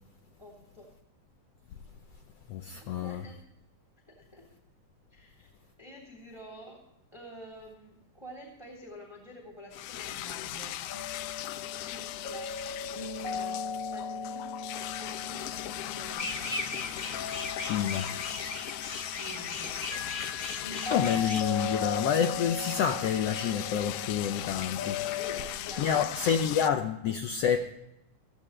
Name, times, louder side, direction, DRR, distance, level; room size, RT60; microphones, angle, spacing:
voice 1, 0.4-0.9 3.0-3.4 4.1-4.5 5.1-5.5 5.8-6.8 7.1-11.2 11.8-12.5 12.9-13.6 13.9-16.5 19.2-19.9 25.1-26.4, equal, 10° right, 3.0 m, -48 dB
voice 2, 2.5-3.2 17.6-18.1 20.9-25.2 25.8-27.7, left 8 dB, 70° left, 1.6 m, -28 dB
sound 1, 9.7-26.7, left 13 dB, 90° left, 1.4 m, -38 dB
sound 2, 10.9-25.4, left 4 dB, 30° left, 3.8 m, -38 dB
sound 3, 16.1-21.4, left 2 dB, 45° left, 0.5 m, -38 dB
16.5 x 14.0 x 3.2 m
omnidirectional pair, 3.5 m